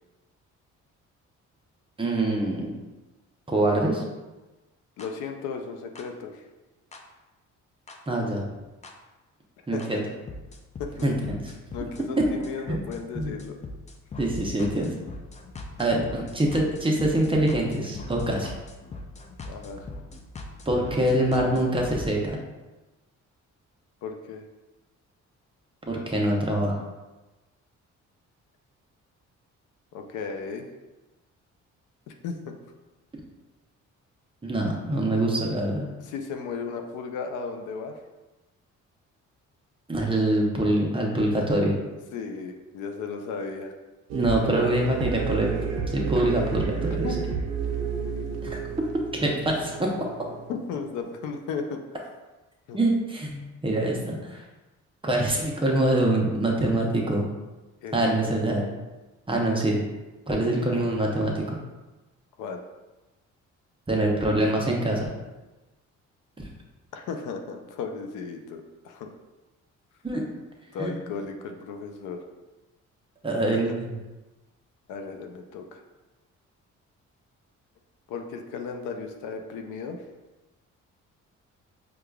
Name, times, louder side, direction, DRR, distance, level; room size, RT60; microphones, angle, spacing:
voice 1, 2.0-2.8 3.5-4.0 8.1-8.4 9.7-10.0 11.0-11.4 12.7-12.8 13.1-13.3 14.2-14.9 15.8-18.5 20.7-22.4 25.9-26.7 34.4-35.9 39.9-41.7 44.1-45.6 45.9-47.1 48.4-48.6 49.1-49.9 52.7-54.4 55.0-57.2 57.9-58.6 59.3-59.8 60.3-61.6 63.9-65.1 70.0-70.3 70.8-70.9 73.2-73.7, right 1 dB, 15° right, -1 dB, 0.7 m, -24 dB
voice 2, 5.0-6.4 9.7-10.0 10.8-11.1 11.7-13.5 15.8-16.0 19.4-19.8 24.0-24.4 29.9-30.7 32.1-32.4 36.0-37.9 42.1-43.7 46.9-47.2 50.5-52.0 52.7-52.8 57.8-58.1 62.4-62.6 66.9-69.1 70.7-72.2 73.5-73.8 74.9-75.8 78.1-80.0, left 5 dB, 85° left, 5 dB, 0.5 m, -35 dB
sound 1, 5.0-5.1 6.0-6.1 6.9-7.0 7.9-8.0 8.8-8.9 9.8-9.9 10.3-22.1, left 2 dB, 25° left, 0.4 m, -40 dB
sound 2, 44.1-51.0, right 6 dB, 60° right, 0.5 m, -31 dB
4.7 x 2.3 x 2.3 m, 1.1 s
cardioid pair, 90°, 30 cm